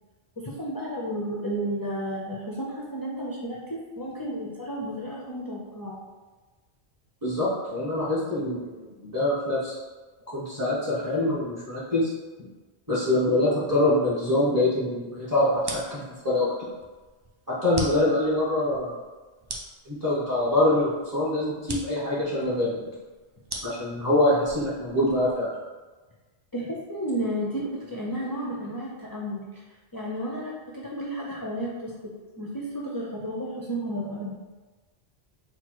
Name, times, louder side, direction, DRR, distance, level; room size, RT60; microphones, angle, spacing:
voice 1, 0.4-6.1 26.5-29.6 29.9-34.4, right 1 dB, 30° left, -5 dB, 0.4 m, -32 dB
voice 2, 7.2-9.7 10.3-12.1 12.9-16.5 17.6-18.9 19.9-22.9 23.6-25.5, left 1 dB, 20° right, -9 dB, 0.9 m, -24 dB
sound 1, 15.5-25.4, right 2 dB, 40° right, 0.3 m, -41 dB
4.3 x 2.1 x 4.5 m, 1.3 s
omnidirectional pair, 1.1 m